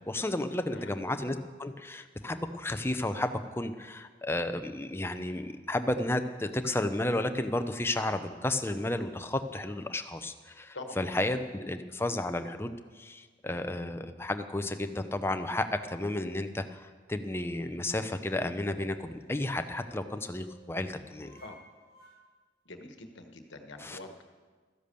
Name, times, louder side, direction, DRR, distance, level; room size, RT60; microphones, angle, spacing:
voice 1, 0.1-21.3 23.8-24.0, left 1 dB, 15° left, 8 dB, 0.6 m, -32 dB
voice 2, 0.7-1.1 10.7-11.0 21.4-21.6 22.6-24.2, left 2 dB, 75° left, 5 dB, 1.3 m, -45 dB
sound 1, 18.6-22.1, right 3 dB, 60° right, 5.4 m, -57 dB
13.5 x 10.5 x 6.8 m, 1.5 s
head